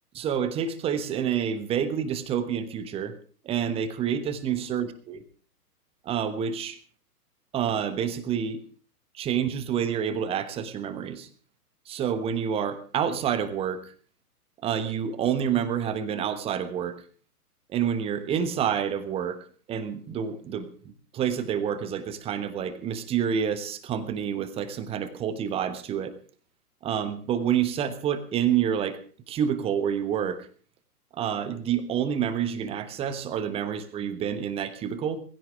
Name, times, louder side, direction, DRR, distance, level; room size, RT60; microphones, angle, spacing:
voice 1, 0.1-3.1 3.4-5.2 6.0-6.8 7.5-8.6 9.1-11.3 11.9-13.9 14.6-17.0 17.7-26.2 26.8-29.0 29.3-30.5 31.1-35.2, right 8 dB, 10° right, 12 dB, 1.2 m, -28 dB
20.0 x 15.5 x 3.5 m, 0.42 s
figure-of-eight pair, 120°, 47 cm